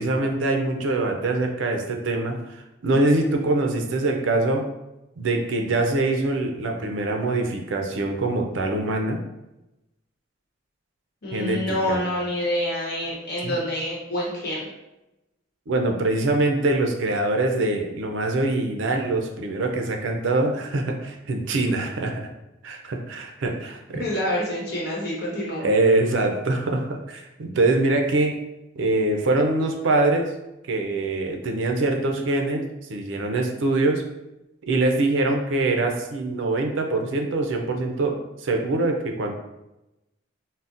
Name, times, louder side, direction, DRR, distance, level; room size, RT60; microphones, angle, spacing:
voice 1, 0.0-4.6 5.2-9.2 11.3-12.0 13.4-13.6 15.7-22.3 22.6-24.0 25.6-28.3 28.8-30.3 30.7-34.0 34.6-39.3, right 2 dB, 75° right, 3 dB, 0.4 m, -24 dB
voice 2, 11.2-14.7 23.9-25.7, left 1 dB, 55° left, -4 dB, 1.0 m, -27 dB
3.9 x 2.0 x 2.5 m, 0.94 s
head